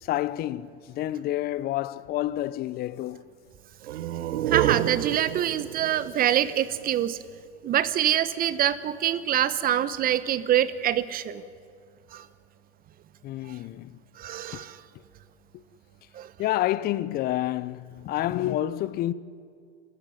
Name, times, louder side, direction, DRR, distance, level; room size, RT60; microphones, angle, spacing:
voice 1, 0.0-3.2 13.2-14.0 14.5-14.6 15.5-15.6 16.4-19.1, left 14 dB, 30° left, 0.7 m, -29 dB
sound 1, 3.8-7.4, right 13 dB, 65° right, 1.0 m, -30 dB
voice 2, 4.5-7.2 7.6-11.4 12.1-12.3 14.2-14.8 16.1-16.3, right 11 dB, 25° right, 1.0 m, -25 dB
23.5 x 13.5 x 9.4 m
hypercardioid pair, 115°, 34 cm